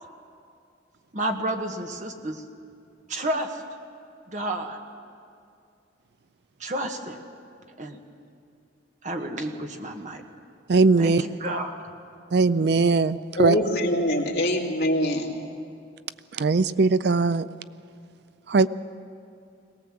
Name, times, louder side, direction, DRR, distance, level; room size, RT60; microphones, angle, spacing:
voice 1, 1.1-2.4 3.1-3.6 4.3-4.8 6.6-7.2 7.8-8.0 9.0-10.2 11.0-11.9 13.5-13.6, right 1 dB, 40° right, 4 dB, 1.5 m, -30 dB
voice 2, 10.7-11.2 12.3-13.6 16.3-17.5 18.5-18.7, right 3 dB, 60° right, 15 dB, 0.5 m, -20 dB
voice 3, 13.4-15.4, equal, 65° left, -1 dB, 2.3 m, -24 dB
22.0 x 18.5 x 7.6 m, 2.4 s
head